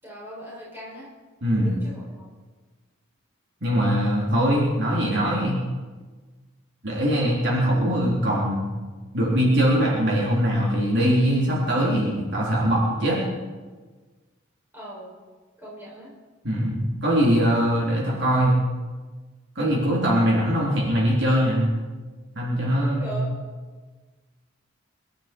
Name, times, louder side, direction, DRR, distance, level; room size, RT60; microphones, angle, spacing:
voice 1, 0.0-1.1 1.6-2.2 14.7-15.1 15.6-16.1 22.8-23.3, equal, 10° right, -6 dB, 6.7 m, -38 dB
voice 2, 3.6-5.6 6.8-8.7 9.1-13.2 16.4-18.6 19.6-21.7 22.4-23.2, equal, 55° right, -5 dB, 3.7 m, -22 dB
23.5 x 12.0 x 4.6 m, 1.4 s
head